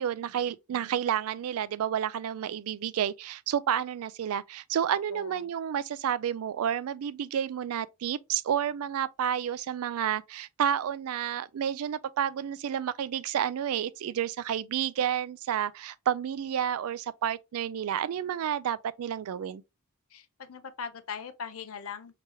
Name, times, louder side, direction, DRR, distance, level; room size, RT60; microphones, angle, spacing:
voice 1, 0.0-19.6, right 9 dB, 75° right, 0.3 m, -30 dB
voice 2, 5.1-5.5 20.1-22.2, left 6 dB, 70° left, 0.6 m, -40 dB
4.7 x 2.9 x 2.9 m
head